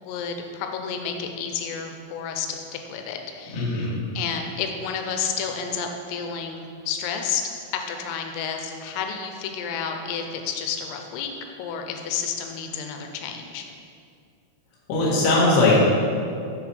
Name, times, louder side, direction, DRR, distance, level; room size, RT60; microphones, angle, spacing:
voice 1, 0.0-7.4 7.7-11.3 11.6-13.7, left 6 dB, 90° left, 4 dB, 3.3 m, -31 dB
voice 2, 3.5-4.0 14.9-15.7, left 2 dB, 60° left, -6 dB, 2.5 m, -20 dB
8.1 x 6.8 x 3.4 m, 2.4 s
omnidirectional pair, 5.8 m